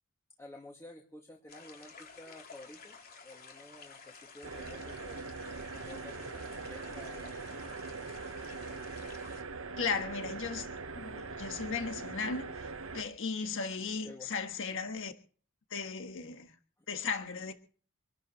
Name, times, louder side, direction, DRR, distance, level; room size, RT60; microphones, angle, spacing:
voice 1, 0.4-3.0 3.2-5.2 5.7-7.8 14.0-14.3 17.4-17.5, left 1 dB, 15° left, 2.2 m, -52 dB
sound 1, 1.5-9.4, left 5 dB, 45° left, 3.3 m, -52 dB
sound 2, 4.4-13.0, right 4 dB, 75° right, 1.3 m, -42 dB
voice 2, 9.8-10.7 10.9-12.7 12.9-15.1 15.7-16.5 16.9-17.5, left 5 dB, 65° left, 1.5 m, -36 dB
26.5 x 12.5 x 3.1 m
head